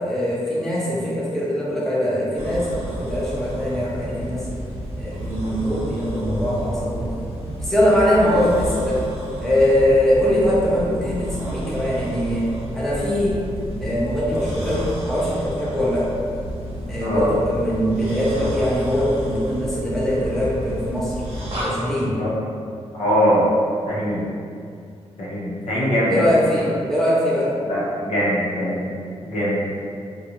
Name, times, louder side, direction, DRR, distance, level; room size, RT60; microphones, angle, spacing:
voice 1, 0.0-4.5 5.0-7.1 7.6-9.0 9.4-13.3 13.8-16.1 16.9-21.1 21.6-22.2 26.1-27.6, equal, 5° left, -8 dB, 0.5 m, -22 dB
sound 1, 2.4-21.6, right 1 dB, 60° right, 0.8 m, -31 dB
voice 2, 22.9-23.5 23.9-24.2 25.2-26.3 27.7-28.8 29.2-29.6, equal, 85° left, -8 dB, 0.8 m, -22 dB
2.4 x 2.3 x 2.8 m, 2.3 s
wide cardioid pair, 160°, 11 cm